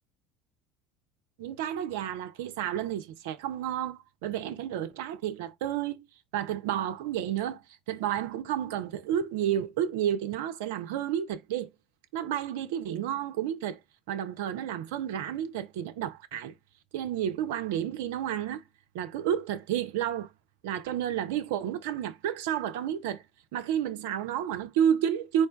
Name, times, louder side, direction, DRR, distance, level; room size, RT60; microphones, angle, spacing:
voice 1, 1.4-6.1 6.3-7.6 7.9-11.7 12.1-13.8 14.1-16.5 16.9-18.6 18.9-20.3 20.6-23.2 23.5-25.5, right 10 dB, 70° right, 0.4 m, -31 dB
4.5 x 2.2 x 4.3 m
hypercardioid pair, 65°, 0 cm